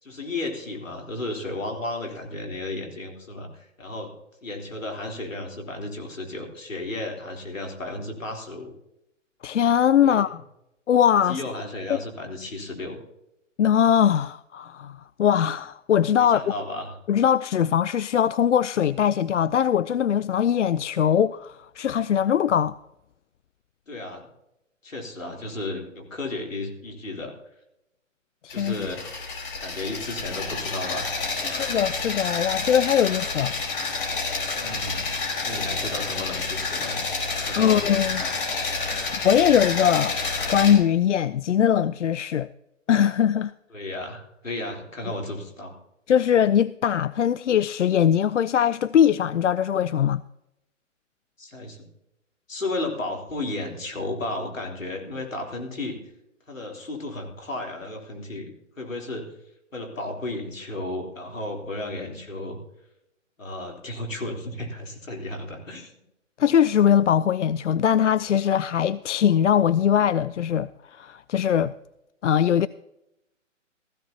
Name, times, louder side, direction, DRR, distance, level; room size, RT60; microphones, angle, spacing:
voice 1, 0.0-4.1 4.4-8.7 10.0-10.3 11.3-13.0 16.2-17.0 23.9-24.3 24.8-27.4 28.4-29.1 29.6-31.1 31.4-31.8 34.6-35.0 35.4-37.0 37.4-37.8 38.2-38.3 43.7-45.8 51.4-51.9 52.5-56.0 56.5-58.5 58.8-59.3 59.7-62.6 63.4-65.9, left 2 dB, 85° left, 3.6 m, -33 dB
voice 2, 9.4-10.4 10.9-11.4 13.6-16.5 17.1-22.8 28.4-28.8 31.5-33.5 37.6-38.2 39.2-40.2 40.5-42.5 42.9-43.5 46.1-50.2 66.4-71.7 72.2-72.7, left 9 dB, 70° left, 0.5 m, -21 dB
sound 1, 28.5-40.7, left 4 dB, 45° left, 4.4 m, -29 dB
16.0 x 15.0 x 2.8 m
figure-of-eight pair, 140°, 39 cm